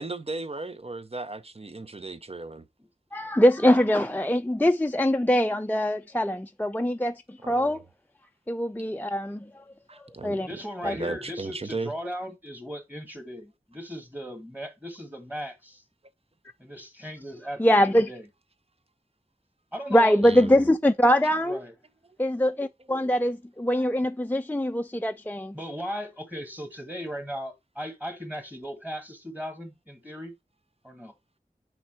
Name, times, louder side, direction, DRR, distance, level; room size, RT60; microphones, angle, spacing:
voice 1, 0.0-2.7 7.4-7.8 9.9-10.4 10.8-11.9 20.2-20.6, right 3 dB, 40° right, 0.7 m, -35 dB
voice 2, 3.1-7.8 8.5-9.5 10.2-10.5 10.8-10.9 17.6-18.1 19.9-21.6 22.2-25.6, equal, 10° left, 0.4 m, -23 dB
voice 3, 10.4-15.8 16.6-18.3 19.7-20.2 21.4-21.7 25.5-30.3 30.8-31.1, equal, 10° right, 1.9 m, -37 dB
6.0 x 4.5 x 4.3 m
wide cardioid pair, 55°, 15 cm